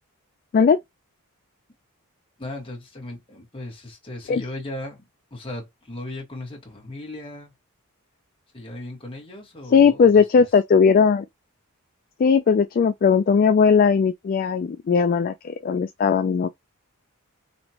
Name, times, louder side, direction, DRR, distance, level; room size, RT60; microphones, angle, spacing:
voice 1, 2.4-7.5 8.5-10.4, left 1 dB, 25° left, 1.8 m, -37 dB
voice 2, 9.7-11.2 12.2-16.5, left 6 dB, 40° left, 0.3 m, -18 dB
4.2 x 2.9 x 2.9 m
head